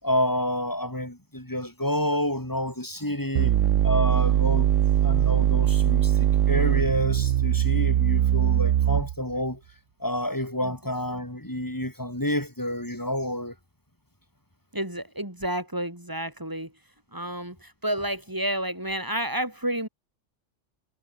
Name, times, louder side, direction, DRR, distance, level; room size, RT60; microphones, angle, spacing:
voice 1, 0.0-3.5 3.8-4.7 5.0-9.6 10.0-13.5, left 1 dB, 15° left, 3.8 m, -29 dB
sound 1, 3.4-9.3, right 11 dB, 80° right, 1.1 m, -21 dB
voice 2, 14.7-16.7 17.1-19.9, right 1 dB, 15° right, 4.8 m, -30 dB
omnidirectional pair, 1.3 m